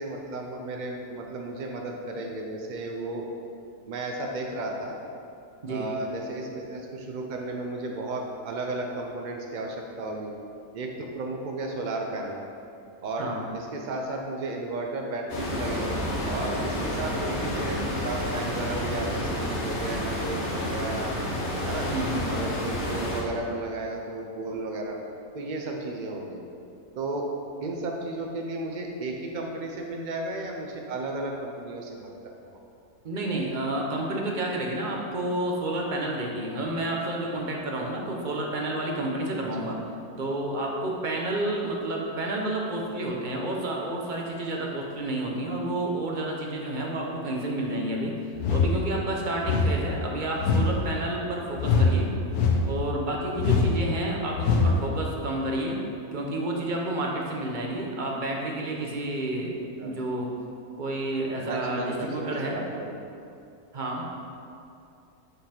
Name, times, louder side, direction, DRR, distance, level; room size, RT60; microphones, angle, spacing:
voice 1, 0.0-3.3 3.9-5.0 5.7-10.3 10.7-12.4 13.0-21.2 21.6-21.9 22.3-25.0 25.3-26.4 26.9-27.3 27.6-32.5 59.8-59.9 61.4-63.0, right 2 dB, 80° right, 1 dB, 0.4 m, -34 dB
voice 2, 5.6-5.9 13.2-13.4 21.9-22.3 33.0-39.8 40.2-48.2 48.5-52.1 52.7-55.8 56.1-59.5 59.8-60.3 60.8-62.6 63.7-64.2, right 1 dB, 40° right, -1 dB, 0.8 m, -30 dB
sound 1, 15.3-23.2, left 1 dB, 50° left, 1.4 m, -30 dB
sound 2, 48.4-48.8 49.4-49.8 50.4-50.7 51.6-51.9 52.3-52.7 53.4-53.7 54.4-54.7, left 4 dB, 85° left, 1.3 m, -22 dB
8.2 x 4.1 x 4.3 m, 2.6 s
omnidirectional pair, 1.6 m